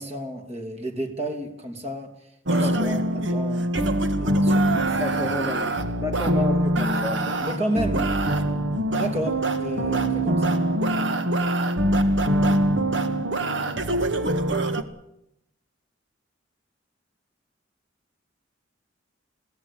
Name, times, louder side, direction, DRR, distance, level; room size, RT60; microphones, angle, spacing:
voice 1, 0.0-2.1 2.5-3.7 4.2-4.9 6.3-6.4 7.4-8.2 9.0-10.6, right 1 dB, 35° right, 5 dB, 2.9 m, -31 dB
sound 1, 2.5-14.8, right 1 dB, 70° right, 1.7 m, -23 dB
voice 2, 2.6-3.0 5.0-5.7 6.0-7.2, left 2 dB, 15° right, 3 dB, 2.3 m, -30 dB
22.0 x 17.0 x 8.5 m, 0.81 s
head